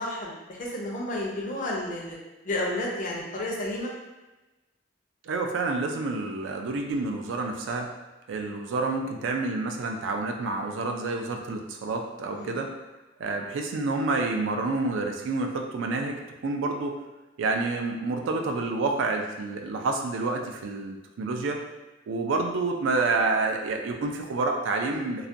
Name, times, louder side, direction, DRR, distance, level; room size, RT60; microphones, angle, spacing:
voice 1, 0.0-2.2 2.4-3.9 12.4-12.6, left 1 dB, 45° left, -3 dB, 0.5 m, -31 dB
voice 2, 5.2-7.9 8.3-12.7 13.2-17.0 17.4-21.6 22.1-25.3, right 3 dB, 75° right, 3 dB, 0.3 m, -28 dB
2.3 x 2.1 x 2.6 m, 1.1 s
head